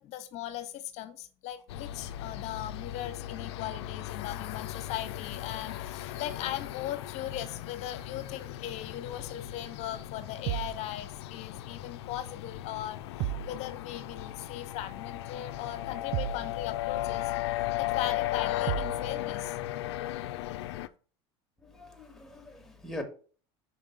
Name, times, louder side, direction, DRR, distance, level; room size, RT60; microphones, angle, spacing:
voice 1, 0.0-19.6 20.8-20.9, left 12 dB, 55° left, 1.1 m, -39 dB
sound 1, 1.7-20.9, left 14 dB, 80° left, 0.4 m, -36 dB
sound 2, 10.5-10.8 13.2-13.6 16.1-16.5 18.7-19.0, right 14 dB, 50° right, 0.4 m, -32 dB
voice 2, 21.6-23.0, left 1 dB, ahead, 1.6 m, -42 dB
5.6 x 3.6 x 5.2 m
supercardioid pair, 100°, 14 cm